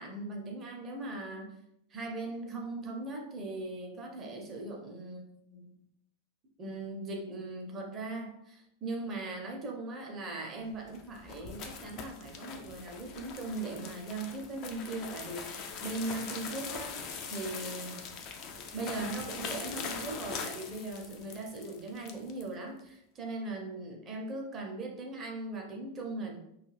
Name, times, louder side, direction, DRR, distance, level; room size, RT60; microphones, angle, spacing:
voice 1, 0.0-1.6 1.9-5.7 6.6-18.0 18.7-26.4, right 2 dB, 25° right, 1 dB, 0.6 m, -39 dB
sound 1, 10.7-22.5, left 5 dB, 40° left, 0.4 m, -42 dB
2.3 x 2.2 x 3.2 m, 0.76 s
figure-of-eight pair, 90°, 0 cm